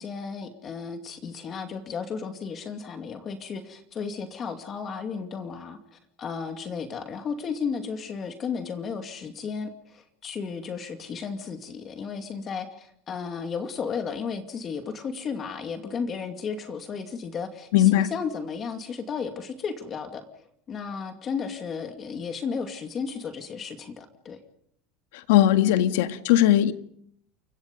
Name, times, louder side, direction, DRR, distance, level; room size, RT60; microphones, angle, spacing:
voice 1, 0.0-20.2 20.7-24.4, left 5 dB, 25° left, 6 dB, 2.4 m, -34 dB
voice 2, 17.7-18.1 25.3-26.7, left 12 dB, 80° left, 10 dB, 1.8 m, -19 dB
29.5 x 23.5 x 5.3 m, 0.68 s
supercardioid pair, 155°, 0 cm